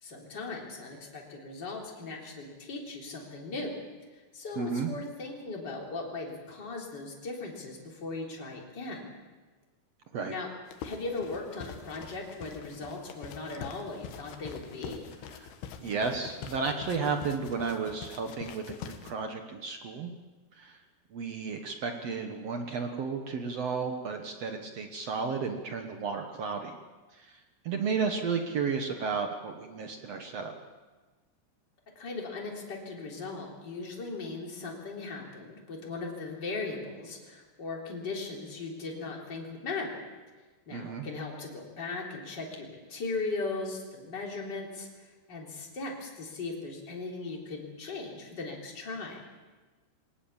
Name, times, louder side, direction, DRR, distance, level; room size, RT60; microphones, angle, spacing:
voice 1, 0.0-3.8 4.3-9.0 10.3-10.5 10.8-15.0 32.0-40.0 40.7-49.2, left 3 dB, 25° left, -1 dB, 3.8 m, -38 dB
voice 2, 4.6-4.9 10.1-10.4 15.4-15.5 15.8-20.1 20.6-20.8 21.1-26.7 27.1-30.5 40.7-41.1, right 5 dB, 75° right, 4 dB, 1.4 m, -33 dB
sound 1, 10.7-19.1, left 7 dB, 75° left, 3.3 m, -45 dB
22.0 x 19.0 x 7.2 m, 1.3 s
omnidirectional pair, 4.9 m